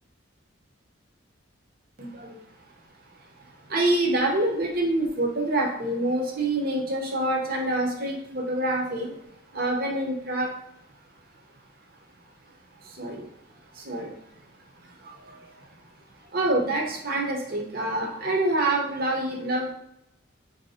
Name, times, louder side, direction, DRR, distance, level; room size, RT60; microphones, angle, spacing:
voice 1, 2.0-2.3 3.7-9.1 9.5-10.5 13.0-13.2 13.9-14.1 16.3-19.7, right 1 dB, 45° right, 0 dB, 0.7 m, -26 dB
3.2 x 2.7 x 4.1 m, 0.80 s
head